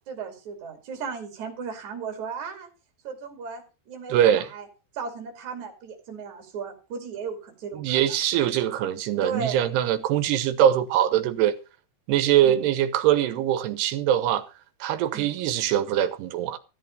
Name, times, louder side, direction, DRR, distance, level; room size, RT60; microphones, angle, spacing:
voice 1, 0.1-2.7 3.0-4.7 4.9-8.2 9.2-9.7 12.4-12.6 15.1-15.4, right 5 dB, 50° right, 3.6 m, -35 dB
voice 2, 4.1-4.5 7.7-11.6 12.1-14.5 14.8-16.6, right 11 dB, 90° right, 3.1 m, -22 dB
14.0 x 8.6 x 5.2 m
omnidirectional pair, 4.6 m